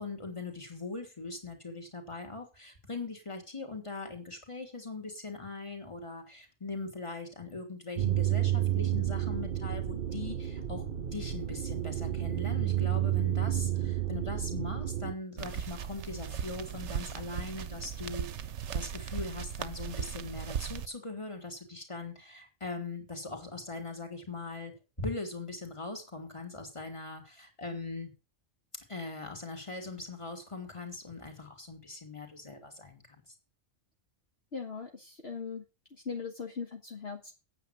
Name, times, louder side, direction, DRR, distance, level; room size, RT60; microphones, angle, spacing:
voice 1, 0.0-10.8 11.1-18.3 18.7-28.1 28.9-33.0, left 3 dB, 25° left, 3 dB, 2.9 m, -41 dB
sound 1, 8.0-15.1, right 12 dB, 50° right, 0.8 m, -31 dB
sound 2, 15.4-20.9, right 8 dB, 65° right, 1.0 m, -37 dB
voice 2, 34.5-35.6 35.9-37.3, left 5 dB, 55° left, 3 dB, 1.7 m, -39 dB
9.0 x 8.8 x 7.1 m, 0.30 s
omnidirectional pair, 1.3 m